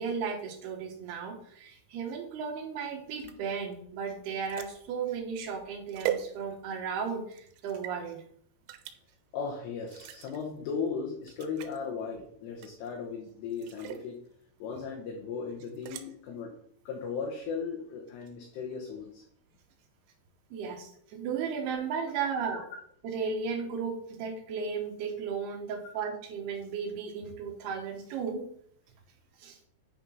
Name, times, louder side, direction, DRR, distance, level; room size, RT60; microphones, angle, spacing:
voice 1, 0.0-8.2 20.5-22.6 23.0-28.5 29.4-29.6, right 6 dB, 75° right, 3 dB, 2.6 m, -35 dB
sound 1, 3.1-6.9 7.3-8.0 8.7-9.0 9.8-10.4 10.9-11.0 11.2-11.8 12.6-13.0 13.5-14.1 15.6-16.1, right 11 dB, 90° right, 3.2 m, -40 dB
voice 2, 9.3-14.2 14.6-16.6 16.9-19.2 22.5-22.6, left 5 dB, 70° left, -1 dB, 2.9 m, -37 dB
9.1 x 4.3 x 5.5 m, 0.65 s
omnidirectional pair, 5.5 m